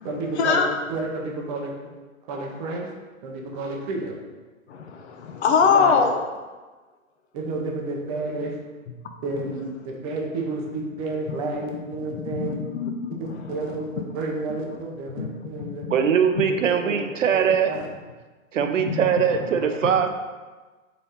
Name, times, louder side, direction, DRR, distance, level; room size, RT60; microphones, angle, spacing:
voice 1, 0.0-0.6 0.9-1.7 2.3-2.9 3.2-4.2 5.6-6.0 7.3-8.6 9.2-12.6 13.2-15.8 16.7-17.0 17.3-17.9, right 2 dB, 25° right, 0 dB, 0.7 m, -30 dB
voice 2, 4.7-6.2 12.4-13.3 15.2-15.3 15.6-15.7 18.9-19.0, left 6 dB, 55° left, 4 dB, 0.6 m, -22 dB
voice 3, 15.9-17.8 18.5-20.1, right 7 dB, 65° right, 7 dB, 0.6 m, -21 dB
3.9 x 3.2 x 4.1 m, 1.3 s
hypercardioid pair, 125°, 41 cm